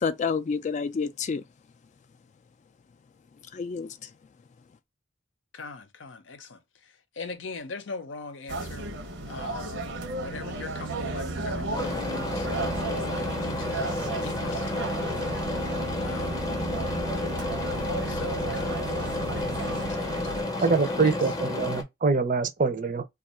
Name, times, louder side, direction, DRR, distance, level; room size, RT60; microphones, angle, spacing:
voice 1, 0.0-1.4 3.5-4.1, left 5 dB, 40° left, 0.3 m, -29 dB
voice 2, 5.5-8.9 9.3-9.9 10.2-12.7 13.1-15.0 16.0-16.7 17.7-21.3, left 3 dB, 75° left, 0.7 m, -42 dB
sound 1, 8.5-20.4, right 2 dB, 80° right, 0.8 m, -33 dB
sound 2, 11.7-21.8, left 2 dB, 20° left, 0.7 m, -31 dB
voice 3, 20.6-23.0, right 4 dB, 45° right, 0.5 m, -24 dB
2.7 x 2.4 x 4.1 m
head